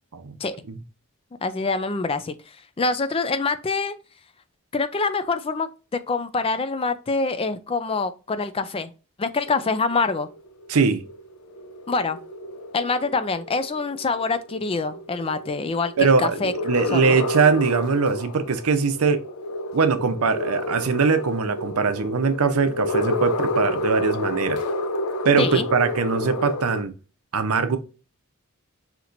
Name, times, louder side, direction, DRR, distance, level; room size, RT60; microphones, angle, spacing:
voice 1, 1.4-2.4 2.8-4.0 4.7-5.7 6.1-8.9 9.2-10.3 11.9-12.2 12.7-16.5 16.9-17.2 25.4-25.7, left 4 dB, 25° left, 0.4 m, -25 dB
sound 1, 9.5-26.8, left 1 dB, 80° left, 0.6 m, -30 dB
voice 2, 10.7-11.0 16.0-19.2 19.7-24.6 25.2-26.9 27.3-27.8, right 5 dB, 80° right, 0.7 m, -21 dB
5.8 x 2.9 x 2.5 m
head